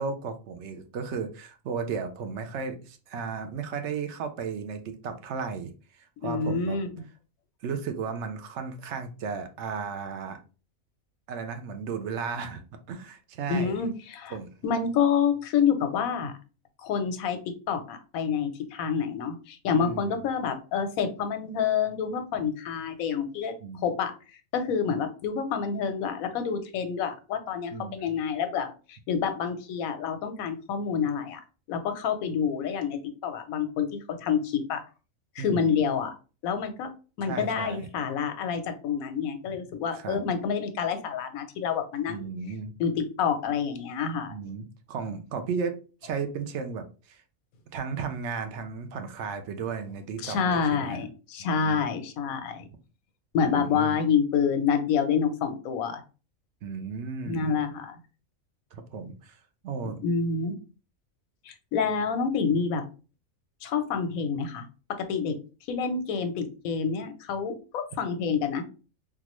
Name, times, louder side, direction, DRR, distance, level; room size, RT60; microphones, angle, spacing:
voice 1, 0.0-5.7 6.2-6.8 7.6-10.4 11.3-13.8 14.3-14.5 19.7-20.2 23.6-23.8 27.7-28.1 35.4-35.8 37.2-37.9 40.0-40.2 42.1-42.7 44.3-47.2 47.7-51.1 51.4-51.8 53.4-54.0 56.6-57.6 58.7-59.4 59.6-60.0, right 5 dB, 65° right, 7 dB, 0.8 m, -34 dB
voice 2, 6.2-6.9 13.5-14.3 14.6-16.3 16.8-24.1 24.5-31.4 31.7-34.8 35.4-36.1 36.4-36.9 37.2-42.3 42.8-44.3 50.2-52.7 53.3-56.0 57.2-58.0 60.0-60.5 61.4-62.8 63.6-64.7 65.0-65.3 65.7-68.6, left 6 dB, 90° left, 8 dB, 1.1 m, -28 dB
3.7 x 2.4 x 3.0 m, 0.34 s
omnidirectional pair, 1.4 m